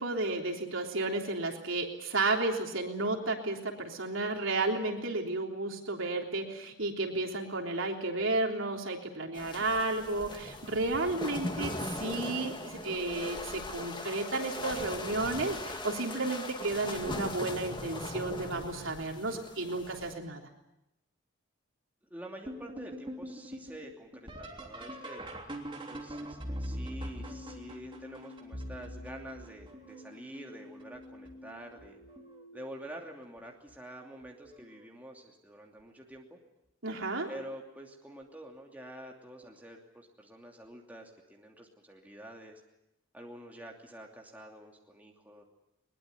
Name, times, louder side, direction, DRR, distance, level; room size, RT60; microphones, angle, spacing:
voice 1, 0.0-20.4 36.8-37.3, right 2 dB, 75° right, 2 dB, 3.5 m, -32 dB
sound 1, 9.3-20.2, left 2 dB, 25° left, 1.9 m, -40 dB
voice 2, 22.1-25.2 25.9-32.0 32.5-36.4 37.3-42.6 43.1-45.5, right 1 dB, 10° right, 0 dB, 2.8 m, -47 dB
sound 2, 22.5-30.1 30.8-31.3 31.8-32.4 33.7-33.8 34.5-34.8 37.0-37.1 39.4-39.5, equal, 25° right, 3.2 m, -42 dB
Keyboard (musical), 26.9-32.8, left 2 dB, 85° left, 2.6 m, -52 dB
22.0 x 21.0 x 9.5 m, 0.87 s
head